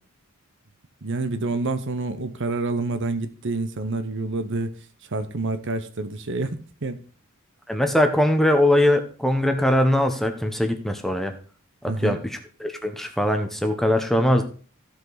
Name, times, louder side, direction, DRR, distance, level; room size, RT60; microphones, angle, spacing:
voice 1, 1.0-4.7 5.0-7.0 11.9-12.2, right 3 dB, 55° right, 0.9 m, -28 dB
voice 2, 7.7-11.3 11.8-14.4, left 1 dB, ahead, 0.9 m, -21 dB
15.0 x 5.1 x 4.0 m
head